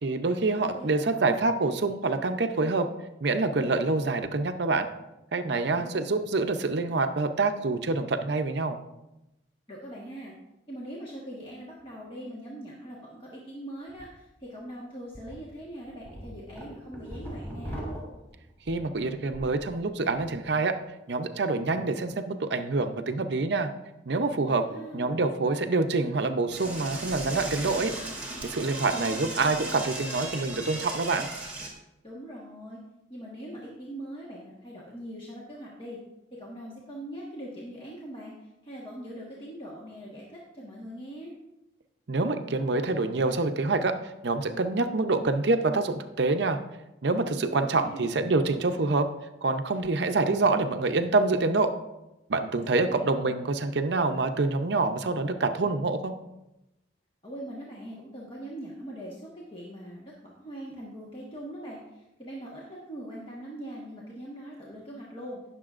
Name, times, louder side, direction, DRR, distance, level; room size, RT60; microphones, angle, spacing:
voice 1, 0.0-2.9 3.2-4.9 5.3-8.8 18.7-20.8 21.1-23.7 24.1-24.7 24.9-27.9 28.4-31.3 42.1-44.0 44.2-46.6 47.0-49.1 49.4-51.7 52.3-56.1, right 3 dB, 65° right, 7 dB, 0.6 m, -26 dB
voice 2, 0.5-1.3 5.7-6.0 9.7-10.3 10.7-17.8 24.5-25.2 28.9-29.4 32.0-32.8 33.1-36.0 36.3-41.3 47.4-48.2 52.6-53.0 57.2-65.5, right 1 dB, 30° left, -5 dB, 1.4 m, -42 dB
sound 1, 13.9-14.0 14.5-14.6 15.1-15.3 15.8-19.6 20.0-20.4, equal, 10° left, 2.7 m, -40 dB
Door / Toilet flush, 26.5-31.7, right 2 dB, 10° right, 1.8 m, -37 dB
18.0 x 6.8 x 2.5 m, 0.93 s
head